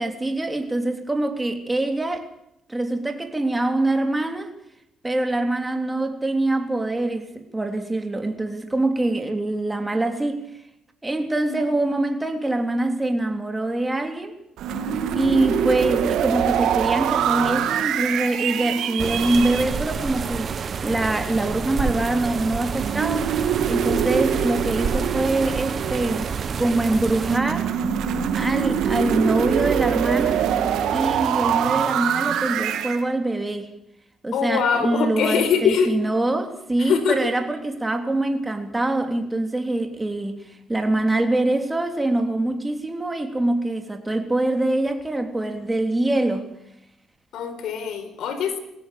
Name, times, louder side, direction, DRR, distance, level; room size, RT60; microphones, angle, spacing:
voice 1, 0.0-2.3 2.7-4.5 5.0-10.4 11.0-14.3 15.1-20.5 20.8-23.3 23.7-26.3 26.6-27.7 28.3-30.5 30.9-33.7 34.2-46.5, right 2 dB, 15° right, 3.5 m, -24 dB
sound 1, 14.6-19.7 22.8-26.5 27.2-33.0, right 9 dB, 80° right, 2.4 m, -24 dB
sound 2, 19.0-27.4, right 6 dB, 50° right, 1.4 m, -29 dB
voice 2, 34.3-35.9 36.8-37.3 47.3-48.6, left 7 dB, 75° left, 4.7 m, -23 dB
21.5 x 17.0 x 8.5 m
cardioid pair, 90°, 0 cm